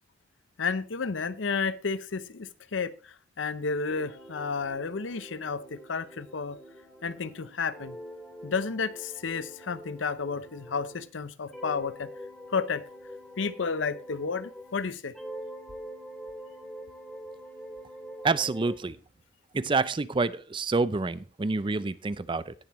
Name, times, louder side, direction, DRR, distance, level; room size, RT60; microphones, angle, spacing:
voice 1, 0.6-6.6 7.0-8.0 8.4-12.1 12.5-12.8 13.4-15.1, left 5 dB, 90° left, 0.7 m, -32 dB
sound 1, 3.9-11.1 11.5-14.8 15.1-18.8, equal, ahead, 3.2 m, -45 dB
voice 2, 18.2-19.0 19.5-22.5, right 3 dB, 25° right, 0.5 m, -28 dB
18.0 x 7.0 x 3.1 m
head